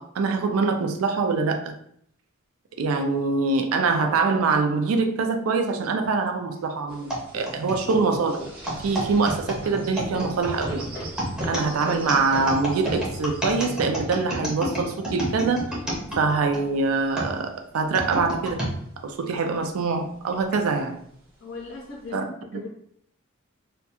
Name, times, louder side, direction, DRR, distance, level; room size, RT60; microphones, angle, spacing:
voice 1, 0.0-1.8 2.8-8.5 8.8-10.9 11.4-15.8 16.2-18.6 19.0-21.0 22.1-22.2, right 4 dB, 80° right, 6 dB, 0.4 m, -24 dB
sound 1, 6.9-17.2 17.8-18.7 19.2-19.3 19.5-20.2 21.0-21.1 21.7-22.1, equal, 45° right, 0.8 m, -40 dB
sound 2, 7.1-16.6 17.2-18.7 19.4-19.5 20.3-20.6, equal, 5° right, 0.5 m, -30 dB
voice 2, 21.4-22.7, left 3 dB, 60° left, -3 dB, 0.5 m, -37 dB
2.3 x 2.2 x 2.8 m, 0.68 s
head